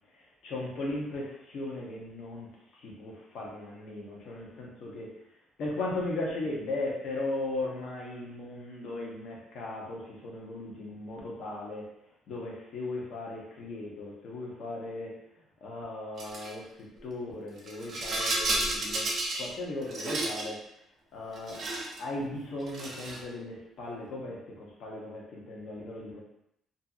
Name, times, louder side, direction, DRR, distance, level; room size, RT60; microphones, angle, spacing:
voice 1, 0.1-2.5 3.0-5.2 5.6-11.9 12.3-15.2 15.6-16.7 17.0-19.1 19.3-20.6 21.1-21.6 22.0-26.2, left 2 dB, 60° left, -2 dB, 0.7 m, -37 dB
Rattle, 16.2-16.5 17.6-19.5 19.8-20.5 21.3-22.0 22.6-23.3, right 2 dB, 35° right, 0.5 m, -32 dB
2.6 x 2.5 x 2.4 m, 0.78 s
cardioid pair, 165°, 0 cm